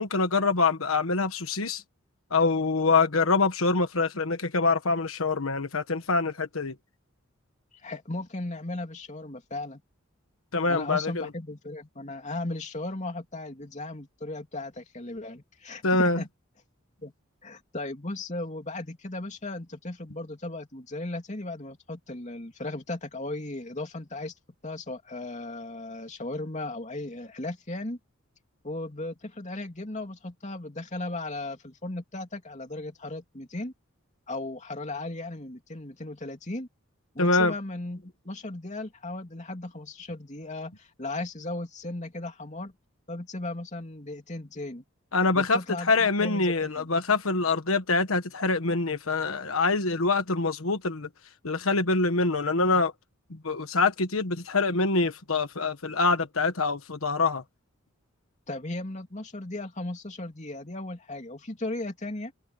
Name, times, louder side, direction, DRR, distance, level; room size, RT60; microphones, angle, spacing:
voice 1, 0.0-1.8 2.3-6.7 10.5-11.3 15.8-16.2 37.2-37.5 45.1-45.6 45.9-51.1 51.4-52.9 53.3-57.4, left 3 dB, 85° left, 1.3 m, -25 dB
voice 2, 7.8-9.8 10.7-16.3 17.0-17.1 17.4-24.3 24.6-28.0 28.6-33.7 34.3-36.7 37.1-42.7 43.1-44.8 45.3-46.9 58.5-62.3, left 2 dB, 35° left, 3.0 m, -36 dB
head